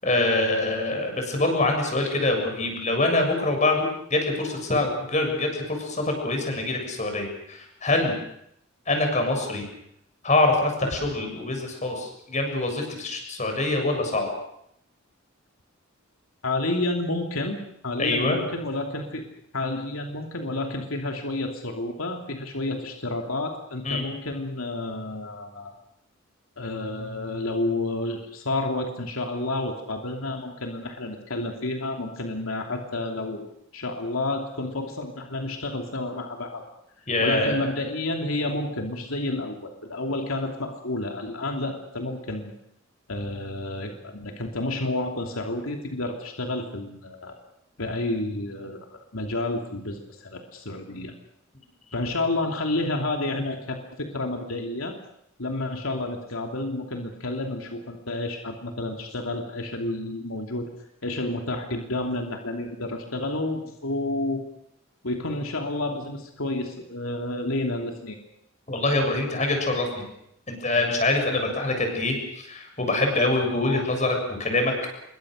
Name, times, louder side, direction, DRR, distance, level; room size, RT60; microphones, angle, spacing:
voice 1, 0.0-8.2 8.9-9.6 10.2-14.3 18.0-18.4 23.8-24.0 37.1-37.6 68.7-70.1 70.5-74.7, left 2 dB, 35° left, 4 dB, 7.3 m, -25 dB
voice 2, 16.4-17.6 17.8-19.2 19.5-25.7 26.6-33.5 33.7-36.6 37.2-42.5 43.1-47.4 47.8-51.1 51.9-55.0 55.4-60.7 61.0-64.4 65.0-68.2, left 2 dB, 85° left, 2 dB, 3.0 m, -30 dB
27.0 x 23.5 x 6.6 m, 0.75 s
head